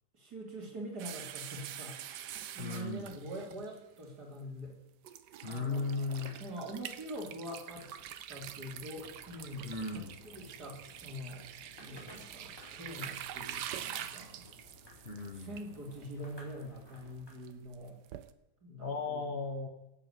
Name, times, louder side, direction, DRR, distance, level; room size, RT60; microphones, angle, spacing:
voice 1, 0.1-2.3 2.6-4.8 5.4-5.8 6.4-7.9 8.3-11.5 11.8-14.5 15.3-18.0 18.6-19.4, equal, 70° right, 0 dB, 3.7 m, -44 dB
sound 1, 1.0-4.0 4.7-4.8 5.0-18.3, right 10 dB, 85° right, 1.4 m, -46 dB
voice 2, 2.6-3.1 5.4-6.4 9.6-10.1 15.0-15.5 18.8-19.7, left 3 dB, 40° left, 4 dB, 1.5 m, -36 dB
sound 2, 5.4-17.5, equal, 15° left, 4.1 m, -60 dB
sound 3, 8.3-17.2, left 1 dB, 85° left, 5.5 m, -60 dB
15.5 x 8.5 x 8.3 m, 0.91 s
omnidirectional pair, 1.8 m